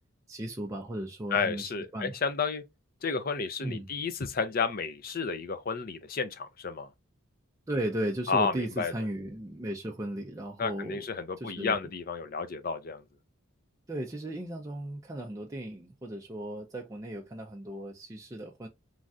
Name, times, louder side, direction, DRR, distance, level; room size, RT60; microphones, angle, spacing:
voice 1, 0.3-2.2 3.6-3.9 7.7-11.0 11.4-11.8 13.9-18.7, right 1 dB, 15° right, 0.3 m, -36 dB
voice 2, 1.3-2.6 3.0-6.9 8.3-8.9 10.6-13.0, left 5 dB, 45° left, 0.5 m, -31 dB
3.1 x 2.4 x 2.5 m
head